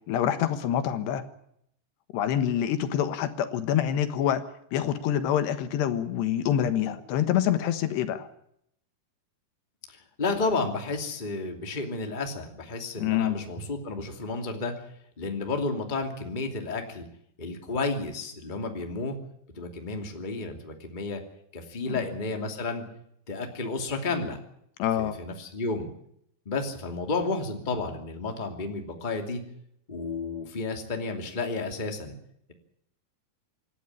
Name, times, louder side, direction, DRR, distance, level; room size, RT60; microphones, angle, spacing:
voice 1, 0.1-1.2 2.1-4.4 4.7-8.3 13.0-13.4 21.9-22.0 24.8-25.2, left 10 dB, 85° left, 9 dB, 3.6 m, -26 dB
voice 2, 9.9-14.7 15.2-17.1 17.4-19.2 19.5-21.2 21.5-22.8 23.3-24.4 25.0-25.9 26.4-29.4 29.9-32.2, left 3 dB, 15° left, 4 dB, 2.0 m, -32 dB
27.0 x 12.0 x 9.8 m, 0.72 s
omnidirectional pair, 4.8 m